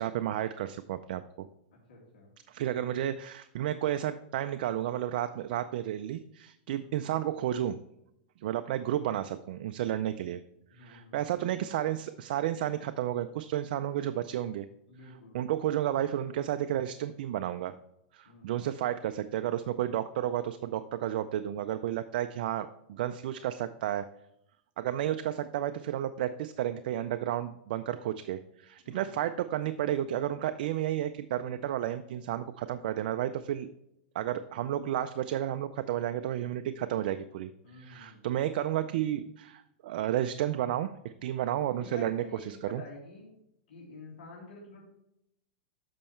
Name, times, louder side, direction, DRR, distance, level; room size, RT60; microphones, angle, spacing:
voice 1, 0.0-1.5 2.5-7.8 8.4-10.4 10.8-14.7 15.1-17.7 18.1-24.1 24.8-33.7 34.1-42.8, right 12 dB, 60° right, 10 dB, 0.4 m, -32 dB
voice 2, 1.9-2.3 6.8-7.1 10.7-11.4 14.9-15.4 18.3-18.5 28.8-29.2 37.6-38.4 41.8-43.3 43.7-44.8, left 3 dB, 80° left, -2 dB, 2.3 m, -49 dB
7.5 x 5.4 x 4.3 m, 0.82 s
supercardioid pair, 145°, 5 cm